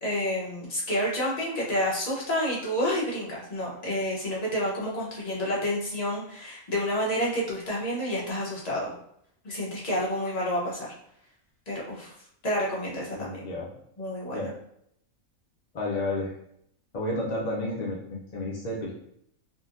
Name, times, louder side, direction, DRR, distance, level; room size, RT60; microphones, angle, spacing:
voice 1, 0.0-8.9 9.4-10.9 11.7-12.1 12.4-13.4 14.0-14.5, equal, 35° left, -5 dB, 0.8 m, -29 dB
voice 2, 13.1-13.7 14.3-14.6 15.7-16.4 16.9-18.9, left 1 dB, 70° left, -3 dB, 0.4 m, -31 dB
3.7 x 2.1 x 2.5 m, 0.71 s
omnidirectional pair, 1.5 m